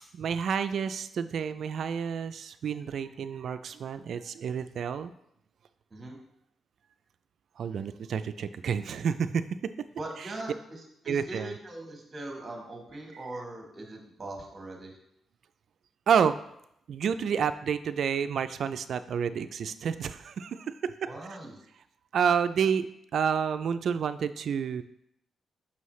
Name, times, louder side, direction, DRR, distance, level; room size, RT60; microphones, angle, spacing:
voice 1, 0.1-5.1 7.6-9.6 10.2-10.3 11.1-11.5 16.1-16.4 16.9-21.1 22.1-22.9 23.1-24.8, right 7 dB, 60° right, 11 dB, 0.3 m, -29 dB
voice 2, 10.0-14.9 21.0-21.5, right 2 dB, 25° right, 1 dB, 1.4 m, -41 dB
6.1 x 5.5 x 3.1 m, 0.75 s
cardioid pair, 140°, 0 cm